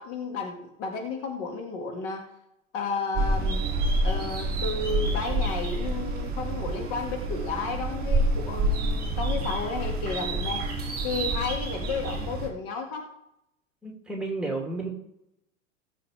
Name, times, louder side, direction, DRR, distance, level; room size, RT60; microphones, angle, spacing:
voice 1, 0.0-2.3 2.7-3.7 4.0-13.1, left 4 dB, 40° left, 3 dB, 1.9 m, -33 dB
sound 1, 3.1-12.5, right 2 dB, 25° right, 2.6 m, -28 dB
voice 2, 13.8-14.9, right 3 dB, ahead, 0 dB, 2.6 m, -32 dB
18.0 x 7.6 x 3.4 m, 0.81 s
figure-of-eight pair, 90°, 39 cm